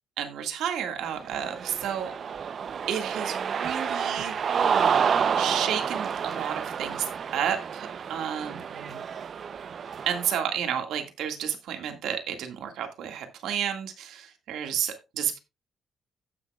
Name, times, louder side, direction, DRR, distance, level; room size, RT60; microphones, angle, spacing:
voice 1, 0.2-2.1 2.9-4.4 5.3-8.5 10.1-15.4, right 9 dB, 80° right, 5 dB, 1.8 m, -31 dB
Cheering, 1.2-10.4, right 7 dB, 55° right, 0.6 m, -29 dB
16.0 x 6.4 x 2.3 m, 0.26 s
cardioid pair, 90°, 0 cm